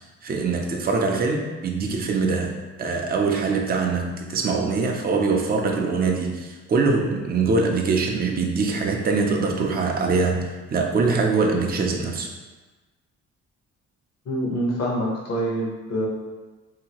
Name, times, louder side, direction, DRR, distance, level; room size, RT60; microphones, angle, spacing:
voice 1, 0.0-2.5 2.8-12.3, right 4 dB, 30° right, 1 dB, 0.5 m, -23 dB
voice 2, 14.3-16.1, equal, 55° left, -3 dB, 0.9 m, -26 dB
2.8 x 2.7 x 2.9 m, 1.2 s
cardioid pair, 90°, 30 cm